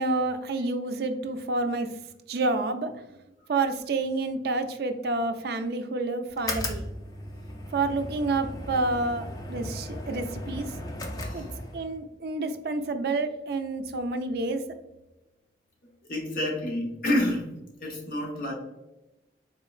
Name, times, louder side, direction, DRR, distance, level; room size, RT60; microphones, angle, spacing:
voice 1, 0.0-1.9 2.3-2.9 3.5-6.8 7.7-10.7 11.3-11.5 11.7-14.6, right 3 dB, 60° right, 8 dB, 0.4 m, -29 dB
sound 1, 6.3-12.0, left 1 dB, 20° left, 0.4 m, -36 dB
voice 2, 11.1-11.5 16.1-17.5 17.8-18.5, left 1 dB, 50° left, -2 dB, 0.9 m, -29 dB
3.7 x 3.0 x 2.3 m, 0.97 s
head